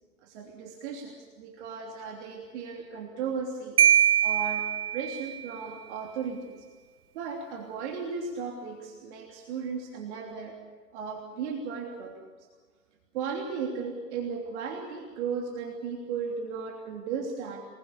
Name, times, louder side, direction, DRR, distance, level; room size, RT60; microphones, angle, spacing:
voice 1, 0.2-3.8 4.2-6.7 7.1-10.6 10.9-12.2 13.1-17.6, right 5 dB, 45° right, 1 dB, 3.2 m, -35 dB
Marimba xylophone, 3.8-5.5, right 10 dB, 70° right, 0.8 m, -23 dB
26.0 x 21.0 x 6.9 m, 1.5 s
figure-of-eight pair, 110°, 47 cm